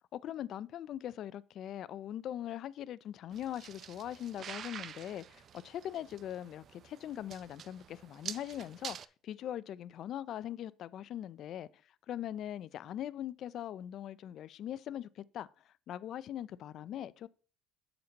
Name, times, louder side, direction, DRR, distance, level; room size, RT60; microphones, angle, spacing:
voice 1, 0.1-9.0 9.2-11.7 12.1-17.3, left 11 dB, 55° left, 0.4 m, -41 dB
sound 1, 3.3-9.1, right 8 dB, 45° right, 0.4 m, -48 dB
6.9 x 6.5 x 4.0 m
cardioid pair, 125°, 0 cm